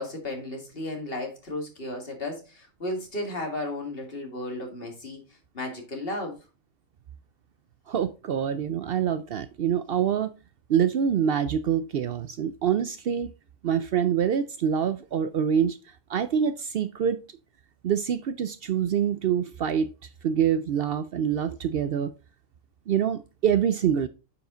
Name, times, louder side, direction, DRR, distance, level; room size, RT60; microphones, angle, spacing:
voice 1, 0.0-5.3 5.5-6.4, left 1 dB, 50° left, 2.3 m, -34 dB
voice 2, 7.9-10.3 10.7-13.3 13.6-15.8 16.1-17.2 17.8-19.9 20.2-22.1 22.9-24.1, right 8 dB, 60° right, 0.7 m, -25 dB
9.3 x 4.9 x 3.8 m
omnidirectional pair, 1.2 m